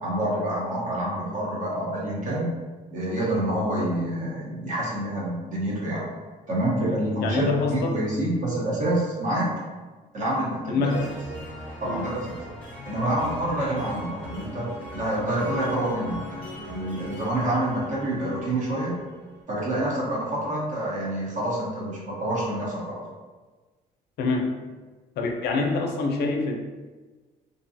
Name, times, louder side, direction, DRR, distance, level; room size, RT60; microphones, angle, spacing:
voice 1, 0.0-2.5 2.9-6.1 6.5-9.5 10.1-10.9 11.8-12.4 12.9-16.2 16.6-19.0 19.5-23.0, right 1 dB, 50° right, -5 dB, 1.0 m, -27 dB
voice 2, 6.8-8.0 10.7-11.1 11.8-12.1 24.2-24.5 25.2-26.5, left 3 dB, 75° left, 3 dB, 0.4 m, -26 dB
sound 1, 10.9-19.4, left 1 dB, 5° left, 1.0 m, -40 dB
2.6 x 2.2 x 2.6 m, 1.3 s
cardioid pair, 110°, 17 cm